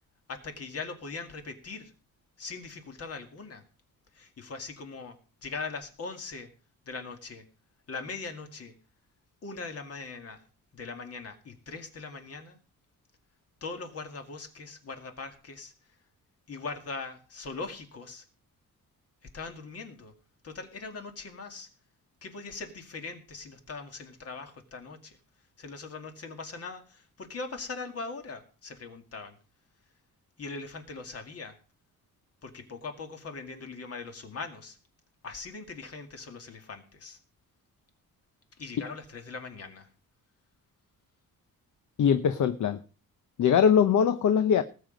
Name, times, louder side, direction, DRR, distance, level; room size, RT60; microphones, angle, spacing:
voice 1, 0.3-1.9 2.4-3.6 4.1-6.5 6.9-7.5 7.9-8.7 9.4-10.4 10.7-12.6 13.6-15.7 16.5-18.2 19.3-20.1 20.4-21.7 22.2-25.2 25.6-29.4 30.4-31.6 32.4-34.8 35.2-37.2 38.6-39.9, left 4 dB, 45° left, 2.3 m, -40 dB
voice 2, 42.0-42.8 43.4-44.6, left 7 dB, 60° left, 0.9 m, -22 dB
19.0 x 7.8 x 5.2 m
wide cardioid pair, 160°, 33 cm